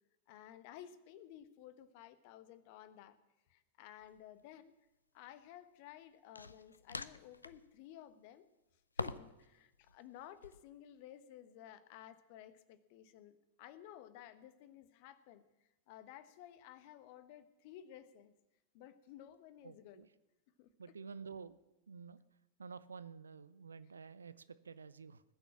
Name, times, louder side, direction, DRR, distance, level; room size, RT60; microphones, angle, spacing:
voice 1, 0.3-3.2 3.5-4.7 5.1-8.5 9.0-15.4 15.9-18.3 18.7-20.0 20.6-20.7, left 11 dB, 45° left, 14 dB, 1.1 m, -55 dB
sound 1, 4.0-4.2 6.4-7.7 9.0-9.5 9.7-10.6, left 3 dB, 80° left, 0.5 m, -45 dB
voice 2, 19.6-20.1 20.8-21.6 21.9-22.2 22.6-25.2, right 5 dB, 75° right, 16 dB, 0.6 m, -50 dB
20.0 x 7.1 x 7.4 m, 0.99 s
figure-of-eight pair, 90°, 0 cm